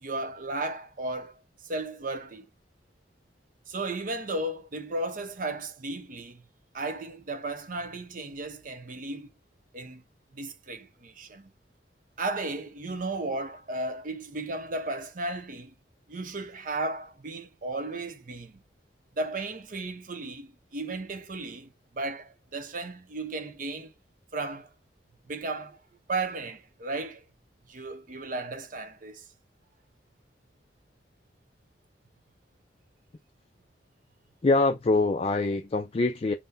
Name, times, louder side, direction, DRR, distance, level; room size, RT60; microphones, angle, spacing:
voice 1, 0.0-2.5 3.7-6.4 6.7-9.3 9.7-10.0 10.3-11.5 12.2-15.7 16.1-18.6 19.1-23.9 24.3-24.7 25.3-25.8 26.1-27.3 27.7-29.3, right 2 dB, 45° right, 0.7 m, -35 dB
voice 2, 34.4-36.3, left 3 dB, 35° left, 0.4 m, -24 dB
5.7 x 2.1 x 4.1 m
head